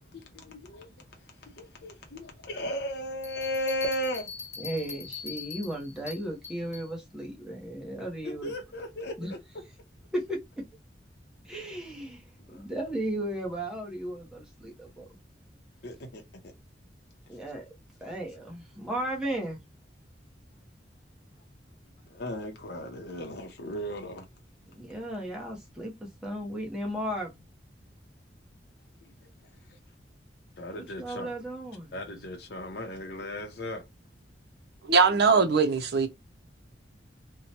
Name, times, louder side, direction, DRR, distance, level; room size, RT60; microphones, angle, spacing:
voice 1, 0.1-4.3 8.2-9.4 12.5-12.6 15.8-16.5 22.1-24.3 30.6-31.3 31.9-33.8, equal, 60° left, 0.7 m, -36 dB
sound 1, 3.2-6.9, left 5 dB, 15° left, 1.2 m, -42 dB
voice 2, 4.6-8.5 9.2-9.3 10.1-10.4 11.4-15.0 17.3-17.6 18.0-19.7 24.7-27.4 30.7-31.9, right 1 dB, 5° right, 0.9 m, -35 dB
voice 3, 34.9-36.1, right 5 dB, 60° right, 0.6 m, -21 dB
2.8 x 2.2 x 2.8 m
head